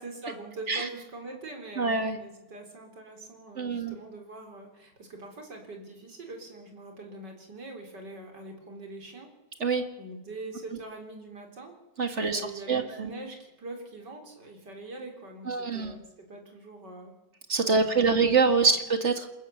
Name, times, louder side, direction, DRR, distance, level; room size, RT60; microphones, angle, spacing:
voice 1, 0.0-9.3 10.0-11.8 12.2-17.2 17.6-18.3, right 2 dB, 65° right, 3 dB, 4.6 m, -43 dB
voice 2, 1.8-2.2 3.6-4.0 9.6-9.8 12.0-12.4 12.7-13.1 15.5-16.0 17.5-19.3, right 4 dB, 40° right, 7 dB, 2.1 m, -25 dB
28.0 x 15.0 x 7.2 m, 1.0 s
omnidirectional pair, 2.0 m